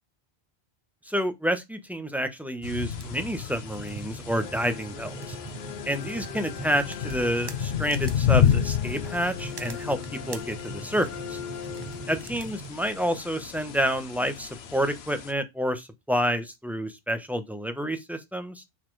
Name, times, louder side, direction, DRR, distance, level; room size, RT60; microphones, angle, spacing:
voice 1, 1.1-5.4 5.8-11.4 12.1-18.6, equal, ahead, 1.1 m, -29 dB
sound 1, 2.6-15.3, left 9 dB, 80° left, 1.0 m, -31 dB
sound 2, 2.8-12.7, right 4 dB, 30° right, 0.5 m, -42 dB
sound 3, 4.3-12.6, left 8 dB, 55° left, 0.6 m, -41 dB
6.3 x 4.3 x 4.8 m
omnidirectional pair, 1.1 m